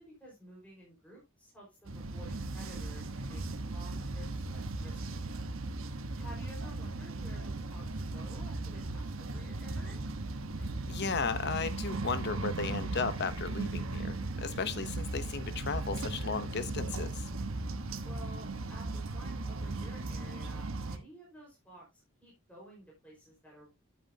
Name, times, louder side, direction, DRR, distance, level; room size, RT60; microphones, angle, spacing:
voice 1, 0.0-5.2 6.2-7.8 8.1-10.0 18.0-23.7, equal, 5° left, 4.7 m, -53 dB
sound 1, 1.8-21.0, right 2 dB, 75° right, 1.2 m, -37 dB
voice 2, 10.9-17.3, left 4 dB, 55° left, 0.9 m, -35 dB
10.5 x 8.6 x 2.8 m
head